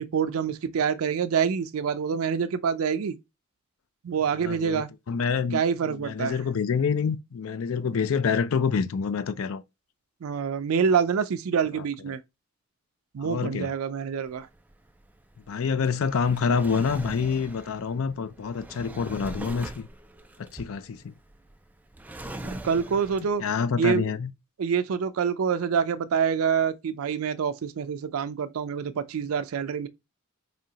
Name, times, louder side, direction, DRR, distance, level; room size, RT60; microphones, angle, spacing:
voice 1, 0.0-3.2 4.0-4.9 5.5-6.4 10.2-12.2 13.1-14.5 22.4-23.4 23.8-24.1 24.6-29.9, right 6 dB, 90° right, 0.4 m, -26 dB
voice 2, 4.4-4.8 5.1-5.6 6.0-9.6 13.2-13.7 15.5-19.9 20.4-21.1 23.4-24.3, left 6 dB, 75° left, 0.4 m, -27 dB
Drawer open or close, 14.3-23.5, right 1 dB, 10° right, 0.3 m, -42 dB
4.9 x 2.8 x 2.8 m
head